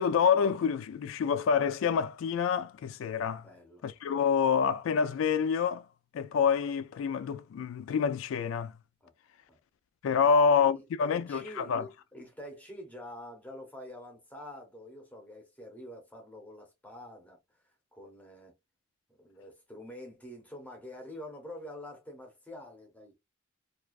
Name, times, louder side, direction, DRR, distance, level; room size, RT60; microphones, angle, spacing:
voice 1, 0.0-3.5 3.8-5.9 6.1-8.7 10.0-11.9, left 6 dB, 85° left, 0.3 m, -27 dB
voice 2, 3.4-3.8 9.0-9.1 9.5-9.6 10.2-17.4 17.9-18.5 19.2-23.2, left 1 dB, 10° left, 0.8 m, -46 dB
2.4 x 2.2 x 2.3 m
head